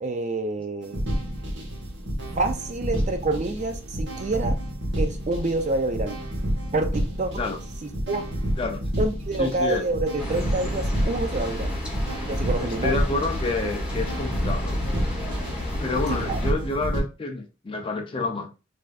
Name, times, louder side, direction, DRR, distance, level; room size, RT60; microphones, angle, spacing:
voice 1, 0.0-1.0 2.3-4.5 5.0-6.2 6.7-7.3 7.8-8.2 9.0-11.7 12.3-13.0 16.2-16.4, right 2 dB, 35° right, 0.4 m, -27 dB
sound 1, 0.8-17.0, equal, 65° right, 1.2 m, -30 dB
voice 2, 9.4-9.9 12.8-14.8 15.8-18.5, left 3 dB, 25° left, 0.4 m, -28 dB
sound 2, 10.2-16.5, left 1 dB, 5° right, 1.0 m, -31 dB
3.3 x 2.6 x 2.3 m
head